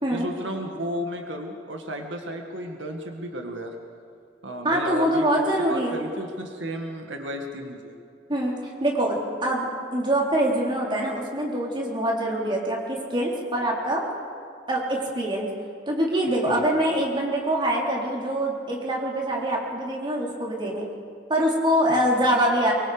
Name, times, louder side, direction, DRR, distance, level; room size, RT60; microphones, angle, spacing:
voice 1, 0.1-3.7 4.4-8.0 16.5-16.6 21.9-22.0, equal, 80° right, 3 dB, 1.9 m, -33 dB
voice 2, 4.6-6.0 8.3-14.0 14.7-15.5 15.9-20.9 21.3-22.7, right 1 dB, 25° right, -2 dB, 3.9 m, -24 dB
24.5 x 23.0 x 5.2 m, 2.4 s
head